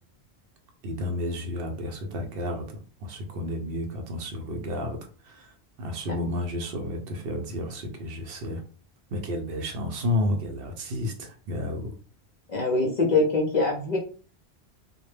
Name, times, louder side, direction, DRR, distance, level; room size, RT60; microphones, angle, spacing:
voice 1, 0.8-8.6 9.1-11.9, left 1 dB, 65° right, 4 dB, 0.7 m, -31 dB
voice 2, 12.5-14.0, left 3 dB, 50° left, 1 dB, 0.6 m, -23 dB
2.1 x 2.0 x 3.2 m, 0.38 s
omnidirectional pair, 1.1 m